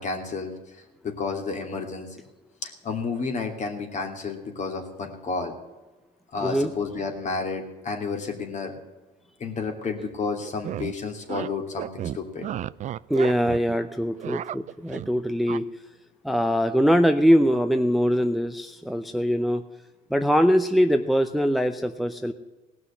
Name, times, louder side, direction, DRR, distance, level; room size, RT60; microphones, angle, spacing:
voice 1, 0.0-2.2 2.6-5.5 6.3-8.7 9.4-12.5, left 4 dB, 45° left, 4 dB, 2.8 m, -31 dB
voice 2, 6.4-6.7 13.1-15.7 16.2-19.6 20.1-22.3, equal, ahead, 8 dB, 0.7 m, -22 dB
sound 1, 10.4-10.9 11.3-11.5 11.8-13.8 14.0-15.1 15.5-15.6, right 11 dB, 45° right, 0.4 m, -33 dB
18.0 x 6.2 x 9.8 m, 1.2 s
cardioid pair, 110°, 17 cm